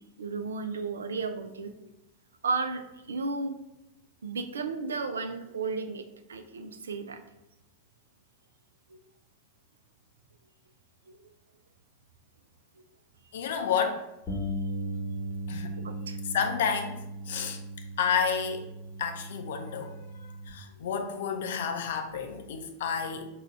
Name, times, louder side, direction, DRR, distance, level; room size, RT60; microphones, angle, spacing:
voice 1, 0.2-1.9 2.4-3.6 4.2-7.2 8.9-9.0 11.1-11.2 14.3-14.6 15.8-16.2 17.4-17.5, right 4 dB, 70° right, 9 dB, 0.3 m, -34 dB
voice 2, 13.3-14.1 15.5-15.7 16.3-17.0 17.3-17.6 18.0-18.7 19.0-23.3, left 6 dB, 60° left, 5 dB, 0.5 m, -30 dB
Bass guitar, 14.3-20.5, right 1 dB, 20° left, 0.9 m, -37 dB
4.7 x 2.2 x 3.1 m, 0.92 s
figure-of-eight pair, 90°, 0 cm